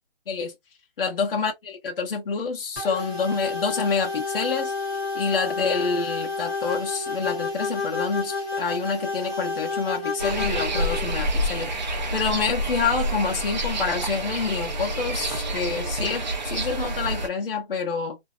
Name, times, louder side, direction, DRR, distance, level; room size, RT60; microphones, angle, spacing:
voice 1, 1.0-4.7 5.1-18.2, left 5 dB, 60° left, 0.9 m, -27 dB
sound 1, 2.8-11.1, left 3 dB, 15° left, 0.7 m, -30 dB
sound 2, 10.2-17.3, right 1 dB, 45° right, 0.5 m, -28 dB
2.7 x 2.0 x 2.3 m
hypercardioid pair, 180°, 32 cm